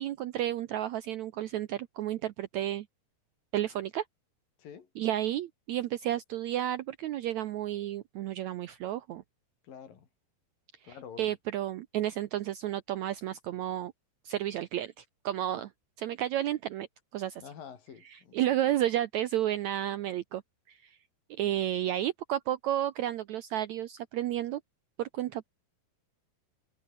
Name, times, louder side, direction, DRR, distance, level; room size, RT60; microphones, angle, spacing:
voice 1, 0.0-2.9 3.5-4.0 5.0-9.2 10.8-13.9 14.2-15.7 16.0-16.9 17.1-17.4 18.1-20.4 20.7-21.0 21.4-24.6 25.0-25.5, right 12 dB, 80° right, 1.6 m, -32 dB
voice 2, 4.6-4.9 9.6-10.1 10.8-11.4 17.4-18.5, left 7 dB, 65° left, 4.9 m, -48 dB
omnidirectional pair, 4.3 m